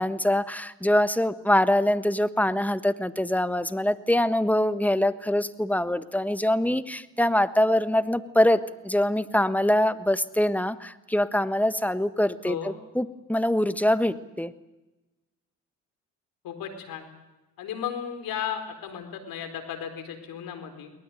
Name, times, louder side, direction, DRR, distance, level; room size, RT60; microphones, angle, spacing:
voice 1, 0.0-14.5, left 1 dB, 5° left, 12 dB, 1.4 m, -24 dB
voice 2, 16.4-17.1 17.6-20.9, left 8 dB, 70° left, 8 dB, 4.3 m, -34 dB
23.0 x 19.0 x 9.3 m, 1.1 s
hypercardioid pair, 55°, 36 cm